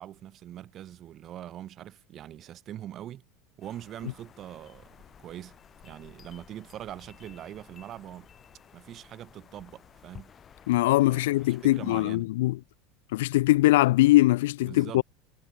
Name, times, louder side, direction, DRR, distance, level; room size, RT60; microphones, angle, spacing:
voice 1, 0.0-3.2 3.6-5.6 5.8-8.3 8.7-10.3 11.1-11.2 11.5-12.3 14.6-15.0, right 12 dB, 40° right, 2.5 m, -42 dB
sound 1, 3.6-12.0, left 7 dB, 25° left, 4.3 m, -54 dB
voice 2, 10.7-12.6 13.1-15.0, left 17 dB, 85° left, 0.3 m, -22 dB
supercardioid pair, 130°, 0 cm